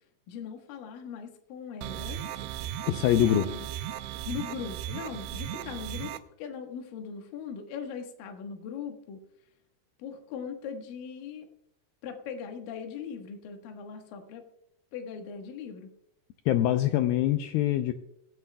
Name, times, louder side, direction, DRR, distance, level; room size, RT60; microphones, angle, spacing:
voice 1, 0.3-2.2 3.3-3.7 4.3-9.2 10.0-11.4 12.0-14.4 14.9-15.9, left 6 dB, 65° left, 4 dB, 2.7 m, -40 dB
sound 1, 1.8-6.2, right 11 dB, 85° right, 2.8 m, -36 dB
voice 2, 2.9-3.4 16.5-17.9, left 12 dB, 85° left, 7 dB, 2.1 m, -24 dB
23.5 x 9.4 x 2.2 m, 0.79 s
omnidirectional pair, 4.9 m